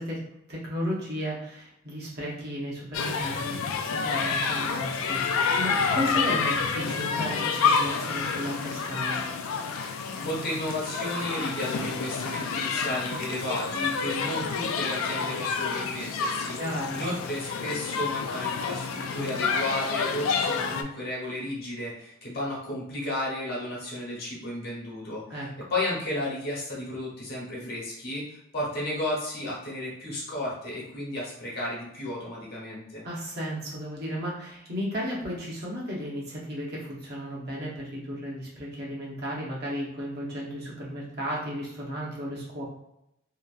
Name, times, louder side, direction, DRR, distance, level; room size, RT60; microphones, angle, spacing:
voice 1, 0.0-9.2 16.6-17.0 25.3-25.5 33.0-42.6, equal, 50° right, -5 dB, 0.9 m, -34 dB
sound 1, 2.9-20.8, left 5 dB, 80° left, 0.3 m, -29 dB
voice 2, 10.2-16.6 16.9-25.2 25.7-33.0, left 1 dB, 50° left, -5 dB, 1.1 m, -33 dB
2.9 x 2.5 x 2.4 m, 0.82 s
head